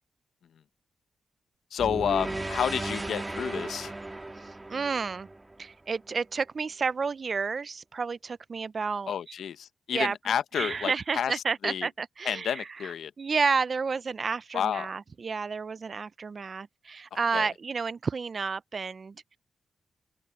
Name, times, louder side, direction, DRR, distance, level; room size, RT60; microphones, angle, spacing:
voice 1, 1.7-3.9 9.1-11.9 12.2-13.1 14.5-14.9 17.3-17.5, left 8 dB, 90° left, 0.7 m, -30 dB
sound 1, 1.8-6.0, right 2 dB, 15° right, 2.1 m, -36 dB
voice 2, 4.4-5.3 5.6-9.1 9.9-19.4, right 5 dB, 40° right, 0.5 m, -31 dB
open air
wide cardioid pair, 140°, 0 cm